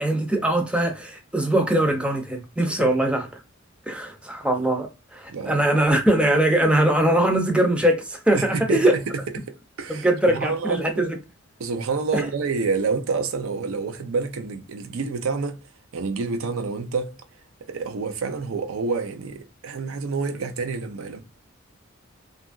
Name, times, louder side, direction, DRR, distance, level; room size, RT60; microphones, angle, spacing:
voice 1, 0.0-3.3 3.9-9.0 9.9-11.2 12.1-12.3, right 1 dB, 5° right, 0.4 m, -21 dB
voice 2, 5.3-5.6 8.3-9.0 9.5-11.1 11.6-15.6 15.9-17.2 17.7-21.2, right 4 dB, 85° right, 0.5 m, -28 dB
2.7 x 2.4 x 2.3 m
head